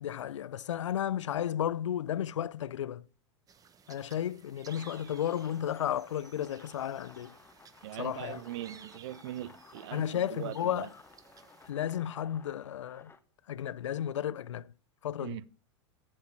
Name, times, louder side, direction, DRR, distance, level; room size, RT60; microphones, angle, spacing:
voice 1, 0.0-3.0 3.9-7.3 8.0-8.4 9.9-10.9 11.7-13.1 13.5-14.7 15.0-15.4, left 10 dB, 80° left, 0.5 m, -33 dB
sound 1, 3.5-11.7, right 6 dB, 25° right, 1.0 m, -57 dB
sound 2, 4.7-13.2, left 5 dB, 15° left, 1.1 m, -57 dB
voice 2, 7.8-10.9 15.2-15.5, right 14 dB, 60° right, 0.7 m, -41 dB
10.5 x 7.6 x 4.7 m
hypercardioid pair, 100°, 15 cm